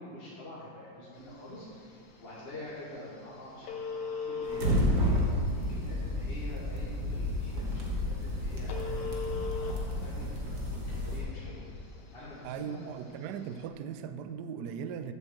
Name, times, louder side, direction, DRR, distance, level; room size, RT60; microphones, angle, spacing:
voice 1, 0.0-10.6 10.9-12.8, left 1 dB, 35° left, -7 dB, 1.5 m, -46 dB
Telephone, 1.2-13.7, left 5 dB, 65° left, 1.5 m, -43 dB
sound 1, 4.4-11.2, left 1 dB, 45° right, 1.7 m, -31 dB
voice 2, 12.4-15.1, right 7 dB, 75° right, 9 dB, 1.0 m, -38 dB
7.8 x 5.8 x 7.6 m, 2.4 s
omnidirectional pair, 2.1 m